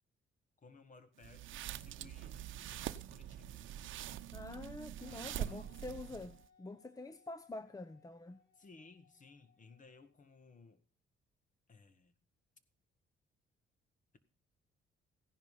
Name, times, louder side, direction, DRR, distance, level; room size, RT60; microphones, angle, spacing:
voice 1, 0.6-4.2 5.1-5.8 8.6-10.8 11.7-12.2, left 4 dB, 40° left, 1.9 m, -60 dB
sound 1, 1.2-6.5, right 12 dB, 80° right, 0.8 m, -44 dB
voice 2, 4.3-8.4, left 2 dB, 20° left, 0.8 m, -47 dB
Wind instrument woodwind instrument, 5.0-10.6, left 6 dB, 80° left, 8.0 m, -69 dB
16.0 x 10.5 x 5.7 m
cardioid pair, 90°, 20 cm